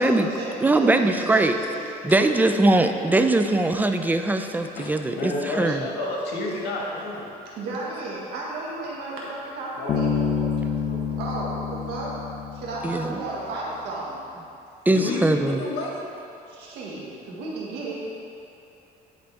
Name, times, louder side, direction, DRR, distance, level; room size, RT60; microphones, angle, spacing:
voice 1, 0.0-1.9 2.2-2.5 7.5-10.1 11.1-12.2 12.5-14.2 16.5-18.0, right 2 dB, 85° right, -5 dB, 1.7 m, -33 dB
voice 2, 0.6-1.6 2.0-5.8 12.8-13.2 14.9-15.6, right 2 dB, 10° right, 6 dB, 0.4 m, -21 dB
voice 3, 4.7-7.3 9.7-11.2 14.9-16.0, left 2 dB, 80° left, -3 dB, 1.6 m, -31 dB
Bass guitar, 9.9-13.3, left 6 dB, 40° left, 0.6 m, -28 dB
11.0 x 4.0 x 3.5 m, 2.8 s
cardioid pair, 110°, 17 cm